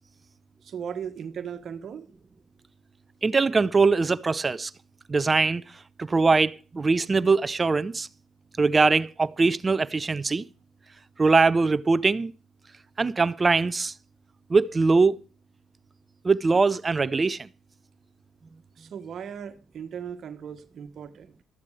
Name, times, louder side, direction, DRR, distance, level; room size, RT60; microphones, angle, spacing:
voice 1, 0.6-2.1 18.8-21.3, right 7 dB, 60° right, 1.5 m, -37 dB
voice 2, 3.2-4.7 5.1-5.6 6.0-8.1 8.6-10.4 11.2-12.3 13.0-13.9 14.5-15.2 16.2-17.5, right 4 dB, 30° right, 0.7 m, -22 dB
13.5 x 10.5 x 4.9 m
supercardioid pair, 65°, 0 cm